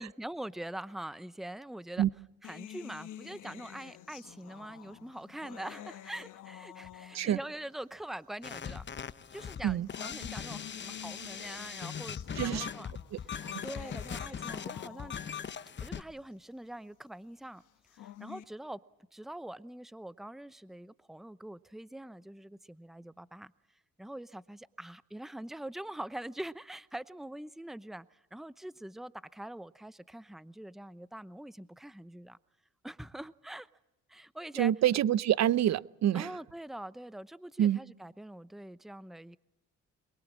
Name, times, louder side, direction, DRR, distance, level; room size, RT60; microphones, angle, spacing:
voice 1, 0.0-2.0 2.4-8.9 9.3-12.9 13.2-13.3 13.6-15.1 15.8-17.6 17.9-18.8 19.1-23.5 24.0-32.4 32.8-33.7 34.1-34.7 36.1-39.4, right 1 dB, ahead, 0.8 m, -44 dB
sound 1, 2.4-7.5 8.5-8.6 9.6-15.5 17.7-18.4, left 12 dB, 80° left, 1.3 m, -49 dB
sound 2, 8.4-16.0, left 7 dB, 35° left, 1.0 m, -40 dB
voice 2, 12.4-12.7 13.1-13.2 13.5-13.6 34.5-36.3 37.6-37.8, right 11 dB, 60° right, 0.7 m, -27 dB
23.0 x 22.5 x 7.4 m
cardioid pair, 90°, 30 cm